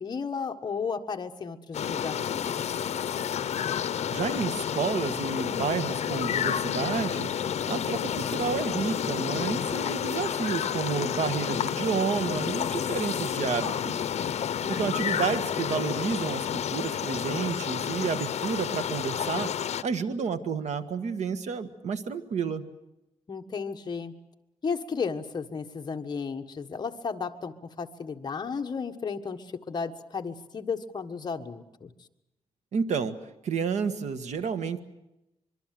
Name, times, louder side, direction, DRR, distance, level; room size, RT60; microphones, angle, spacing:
voice 1, 0.0-2.8 14.6-15.3 23.3-24.1 24.6-31.9, left 5 dB, 40° left, 5 dB, 1.5 m, -34 dB
sound 1, 1.7-19.8, left 8 dB, 70° left, 0.8 m, -30 dB
voice 2, 4.1-7.3 7.7-14.0 14.7-19.5 19.8-22.6 32.7-33.2 33.4-34.8, right 6 dB, 85° right, 9 dB, 1.6 m, -30 dB
24.5 x 23.5 x 7.7 m, 0.90 s
wide cardioid pair, 150°, 12 cm